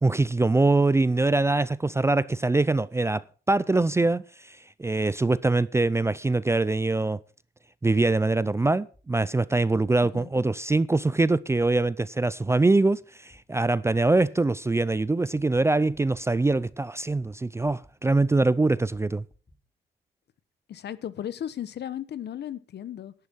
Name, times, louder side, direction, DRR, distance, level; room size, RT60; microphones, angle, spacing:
voice 1, 0.0-7.2 7.8-19.2, right 2 dB, 15° right, 0.4 m, -23 dB
sound 1, 8.9-9.0 9.8-10.0 10.7-10.8 11.6-11.7 12.4-12.5 13.3-13.4 14.1-14.2 14.9-15.1 15.3-15.7 15.9-16.2 16.5-16.8 17.1-17.9 18.2-19.6, left 1 dB, 20° left, 3.1 m, -57 dB
voice 2, 10.0-10.5 20.7-23.1, left 10 dB, 60° left, 1.0 m, -36 dB
11.5 x 8.2 x 5.6 m
cardioid pair, 90°, 20 cm